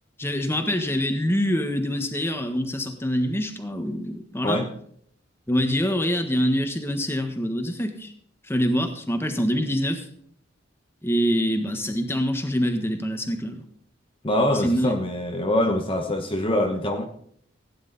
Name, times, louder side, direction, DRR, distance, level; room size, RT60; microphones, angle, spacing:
voice 1, 0.2-4.6 5.5-8.1 8.5-10.1 11.0-13.6 14.6-15.0, equal, 15° left, 6 dB, 1.5 m, -25 dB
voice 2, 14.2-17.1, left 1 dB, 30° left, 2 dB, 1.2 m, -24 dB
16.5 x 10.0 x 4.2 m, 0.64 s
head